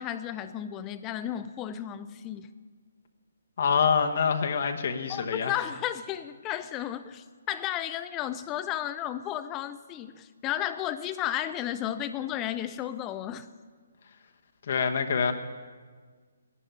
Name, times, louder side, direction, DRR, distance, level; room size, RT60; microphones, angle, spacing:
voice 1, 0.0-2.5 5.1-13.5, left 11 dB, 20° left, 12 dB, 0.5 m, -33 dB
voice 2, 3.6-5.5 14.7-15.3, left 6 dB, 50° left, 5 dB, 1.1 m, -25 dB
11.5 x 10.0 x 9.4 m, 1.6 s
figure-of-eight pair, 140°, 0 cm